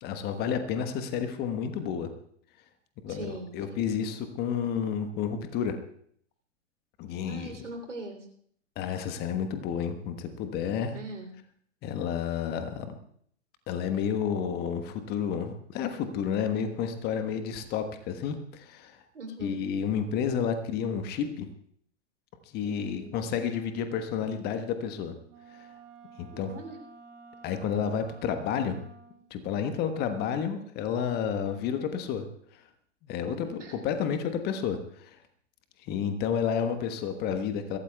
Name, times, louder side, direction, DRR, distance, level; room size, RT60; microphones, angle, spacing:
voice 1, 0.0-2.1 3.0-5.8 7.0-7.5 8.8-11.0 11.8-12.9 13.7-19.0 19.4-21.5 22.5-25.1 25.5-25.7 26.2-26.5 27.4-28.8 29.3-32.2 32.5-32.6 33.0-35.2 35.8-37.8, left 7 dB, 25° left, 8 dB, 1.3 m, -31 dB
voice 2, 3.1-3.9 7.2-8.3 10.9-11.3 19.1-19.7 22.6-23.3 26.3-26.8 33.3-33.8, right 2 dB, 75° right, 3 dB, 3.3 m, -42 dB
Wind instrument woodwind instrument, 25.3-29.3, right 4 dB, 35° right, 2.4 m, -51 dB
22.5 x 16.5 x 2.3 m, 0.63 s
figure-of-eight pair, 110°, 36 cm